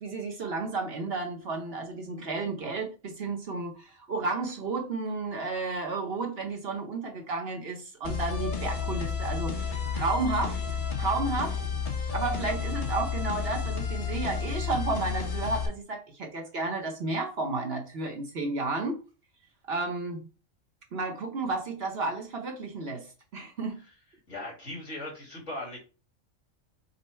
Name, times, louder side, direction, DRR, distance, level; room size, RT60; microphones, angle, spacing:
voice 1, 0.0-10.6 11.0-11.6 12.1-19.0 19.7-20.3 20.9-23.8, right 3 dB, 55° right, 3 dB, 1.0 m, -32 dB
sound 1, 8.0-15.7, left 6 dB, 45° left, 1.0 m, -31 dB
voice 2, 24.3-25.8, left 1 dB, 65° left, -1 dB, 2.2 m, -39 dB
5.4 x 2.1 x 4.3 m, 0.33 s
omnidirectional pair, 1.3 m